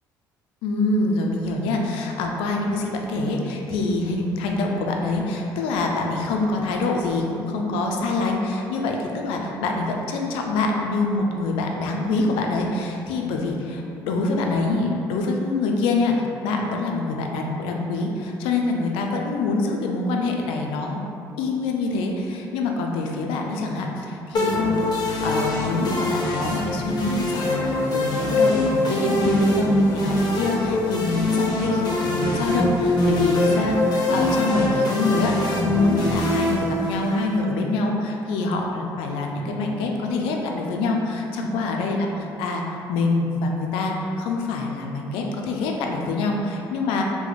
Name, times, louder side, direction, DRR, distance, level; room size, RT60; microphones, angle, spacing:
voice 1, 0.6-16.1 16.4-21.0 21.4-42.1 42.4-47.0, left 3 dB, 80° left, 1 dB, 0.4 m, -25 dB
sound 1, 24.3-37.4, left 1 dB, 50° left, 0.7 m, -23 dB
2.9 x 2.2 x 3.9 m, 2.7 s
supercardioid pair, 65°, 9 cm